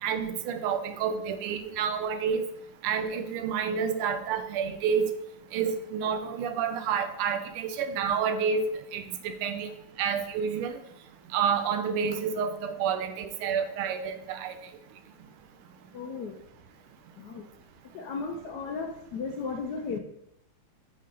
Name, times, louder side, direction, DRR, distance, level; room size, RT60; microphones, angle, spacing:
voice 1, 0.0-2.4 2.8-5.1 5.5-9.7 10.0-10.7 11.3-14.5, right 6 dB, 90° right, 9 dB, 1.5 m, -29 dB
voice 2, 15.9-16.3 17.2-17.4 17.9-20.0, left 4 dB, 80° left, 4 dB, 0.9 m, -35 dB
5.6 x 5.5 x 3.8 m, 0.79 s
omnidirectional pair, 2.4 m